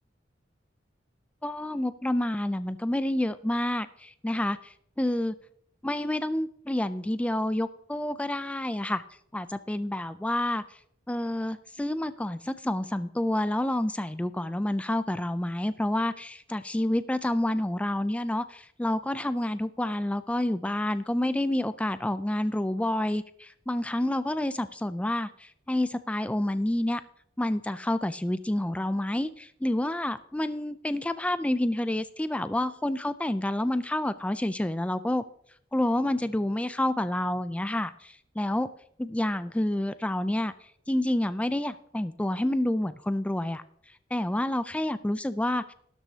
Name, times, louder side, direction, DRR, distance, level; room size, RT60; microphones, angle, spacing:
voice 1, 1.4-5.3 5.8-9.0 9.3-10.6 11.1-27.0 27.4-35.2 35.7-38.7 39.0-40.5 40.9-43.6 44.1-45.7, left 1 dB, 5° left, 13 dB, 0.3 m, -28 dB
12.5 x 12.0 x 2.8 m, 0.64 s
head